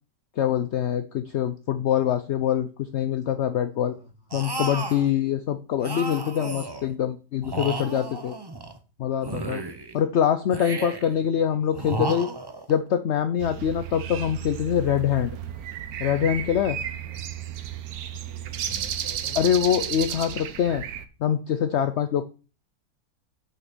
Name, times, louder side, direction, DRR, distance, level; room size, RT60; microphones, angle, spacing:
voice 1, 0.4-3.9 4.3-8.4 9.0-9.6 9.9-12.3 12.7-15.3 16.0-16.8 19.4-20.8 21.2-22.3, left 9 dB, 65° left, 11 dB, 0.7 m, -24 dB
voice 2, 3.8-4.4 11.3-12.0 17.0-17.2 18.2-19.5, left 4 dB, 45° left, 1 dB, 2.7 m, -46 dB
sound 1, 4.3-5.1 5.8-6.9 7.4-8.8 9.2-10.0 10.5-11.2 11.7-12.8, right 3 dB, 25° right, 0.6 m, -33 dB
sound 2, 13.4-21.1, right 10 dB, 70° right, 1.2 m, -33 dB
6.9 x 5.7 x 6.1 m, 0.34 s
omnidirectional pair, 1.8 m